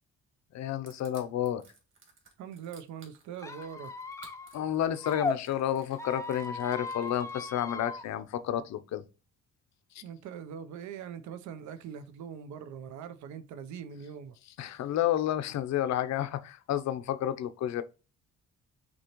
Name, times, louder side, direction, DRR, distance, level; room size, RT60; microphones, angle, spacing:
voice 1, 0.5-1.6 4.5-9.0 9.9-10.0 14.6-17.8, left 11 dB, 65° left, 0.6 m, -31 dB
Crushing, 0.9-7.6, right 4 dB, 40° right, 2.0 m, -57 dB
voice 2, 2.4-3.9 10.0-14.4, right 8 dB, 75° right, 0.7 m, -42 dB
Squeak, 3.4-5.4 5.9-8.0, left 3 dB, 10° left, 0.5 m, -37 dB
6.1 x 2.9 x 3.0 m
cardioid pair, 120°, 30 cm